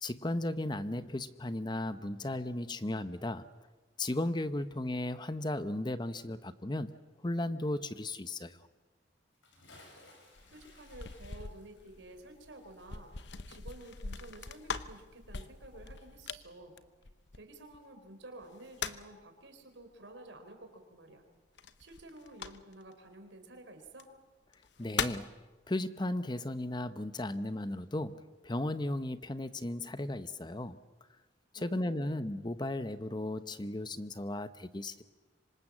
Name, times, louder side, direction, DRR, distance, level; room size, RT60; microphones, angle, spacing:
voice 1, 0.0-3.5 4.0-8.6 24.8-25.3 25.7-30.8 31.5-35.0, left 1 dB, 25° left, 12 dB, 0.8 m, -35 dB
Bathtub (filling or washing) / Splash splatter, 9.3-14.3 14.5-14.6, left 2 dB, 85° left, 7.5 m, -60 dB
sound 1, 10.4-17.8 18.4-19.2 21.6-22.9 23.9-24.0 24.5-25.3, left 6 dB, 65° left, 0.9 m, -41 dB
voice 2, 10.5-13.2 13.5-16.8 17.3-21.2 21.8-24.1 31.5-32.2, right 1 dB, 85° right, 6 dB, 4.2 m, -51 dB
26.5 x 25.0 x 7.4 m, 1.2 s
head